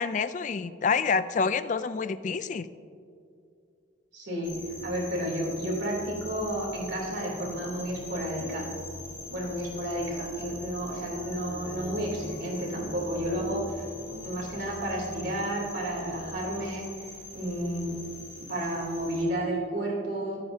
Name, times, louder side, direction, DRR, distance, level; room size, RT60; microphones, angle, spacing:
voice 1, 0.0-2.7, left 5 dB, 40° left, 14 dB, 0.3 m, -27 dB
voice 2, 4.1-4.5 4.8-8.7 9.3-13.8 14.2-18.0 18.5-20.4, right 1 dB, 60° right, -2 dB, 3.1 m, -31 dB
sound 1, 4.4-19.2, left 1 dB, 75° left, 2.3 m, -43 dB
sound 2, 10.9-16.5, right 1 dB, 30° right, 2.5 m, -45 dB
22.5 x 9.4 x 2.8 m, 2.4 s
head